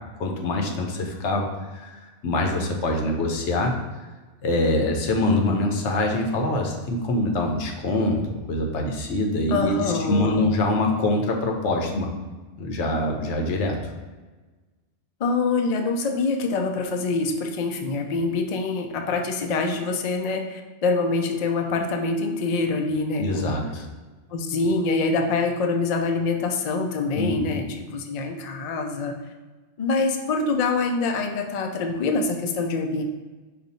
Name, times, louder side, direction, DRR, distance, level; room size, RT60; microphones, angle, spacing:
voice 1, 0.2-1.5 1.7-1.9 2.2-3.8 4.4-12.1 12.6-13.7 23.2-23.9 27.2-27.6, left 2 dB, 85° left, 2 dB, 1.0 m, -24 dB
voice 2, 9.5-10.4 15.2-23.6 24.3-29.2 29.8-33.0, left 3 dB, 55° left, 3 dB, 0.4 m, -25 dB
5.2 x 2.4 x 4.1 m, 1.3 s
omnidirectional pair, 1.2 m